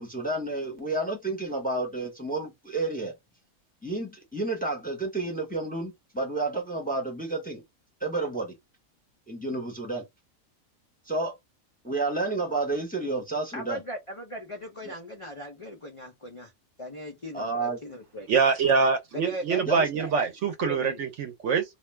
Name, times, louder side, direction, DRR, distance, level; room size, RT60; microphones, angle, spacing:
voice 1, 0.0-3.1 3.8-7.6 8.0-8.6 9.3-10.0 11.1-11.4 11.8-13.8 14.8-14.9 17.3-17.8 19.7-19.8, right 2 dB, 10° left, 0.6 m, -30 dB
voice 2, 13.5-16.5 16.8-18.3 19.1-20.1 20.6-21.0, left 1 dB, 55° left, 0.3 m, -38 dB
voice 3, 18.3-21.6, right 5 dB, 65° right, 0.8 m, -24 dB
2.4 x 2.2 x 3.1 m
omnidirectional pair, 1.5 m